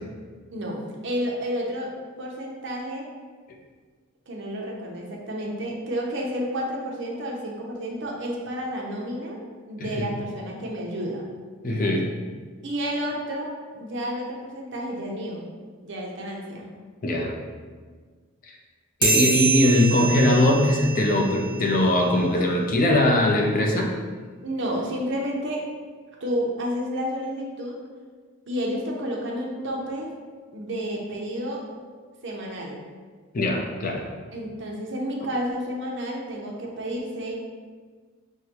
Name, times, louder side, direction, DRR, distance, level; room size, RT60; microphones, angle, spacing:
voice 1, 0.5-3.1 4.3-9.4 9.7-11.3 12.6-15.5 15.8-16.7 24.4-25.7 26.2-27.8 28.5-30.1 30.5-31.6 32.2-32.8 34.3-37.3, equal, 55° right, -1 dB, 0.7 m, -30 dB
voice 2, 11.6-12.1 17.0-17.3 19.0-23.9 33.3-34.0, left 1 dB, 40° left, 1 dB, 0.5 m, -21 dB
sound 1, 19.0-21.9, right 4 dB, 20° right, 0.9 m, -26 dB
6.3 x 2.2 x 2.9 m, 1.5 s
head